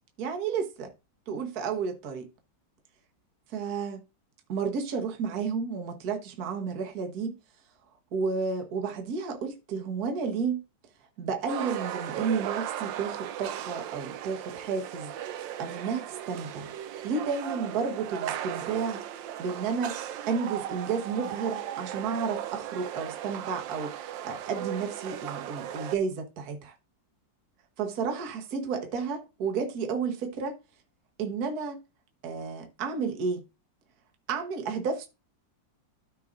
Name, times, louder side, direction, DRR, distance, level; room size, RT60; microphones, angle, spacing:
voice 1, 0.2-0.9 1.3-2.3 3.5-4.0 4.5-7.4 8.1-10.6 11.2-16.7 17.0-20.0 20.3-26.7 27.8-30.6 31.2-31.8 32.2-33.4 34.3-35.1, right 5 dB, 55° right, 1.5 m, -32 dB
sound 1, 11.5-26.0, right 11 dB, 85° right, 1.4 m, -37 dB
13.5 x 4.6 x 2.5 m
omnidirectional pair, 2.0 m